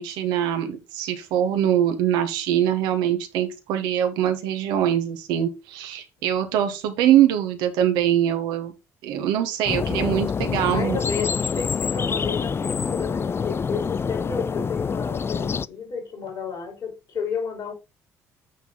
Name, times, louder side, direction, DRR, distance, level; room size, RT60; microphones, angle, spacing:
voice 1, 0.0-8.7 9.0-11.0, right 10 dB, 75° right, 1.5 m, -23 dB
sound 1, 9.7-15.7, left 6 dB, 30° left, 0.4 m, -26 dB
voice 2, 10.7-17.7, left 6 dB, 60° left, 5.5 m, -32 dB
9.2 x 4.1 x 4.2 m
hypercardioid pair, 55°, 8 cm